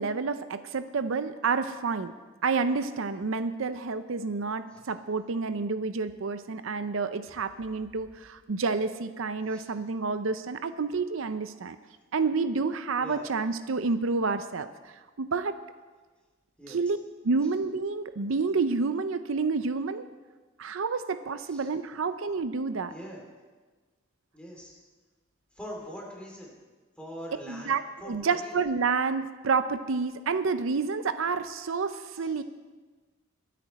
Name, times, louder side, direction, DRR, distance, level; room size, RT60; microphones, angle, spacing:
voice 1, 0.0-2.1 2.4-11.8 12.1-15.6 16.7-17.0 17.2-20.1 20.6-22.9 27.5-32.4, right 4 dB, 75° right, 11 dB, 0.6 m, -29 dB
voice 2, 21.5-22.0 22.9-23.2 24.3-24.8 25.5-26.5 27.0-28.5 32.2-32.3, equal, 5° left, -2 dB, 2.8 m, -43 dB
23.5 x 8.5 x 4.2 m, 1.3 s
head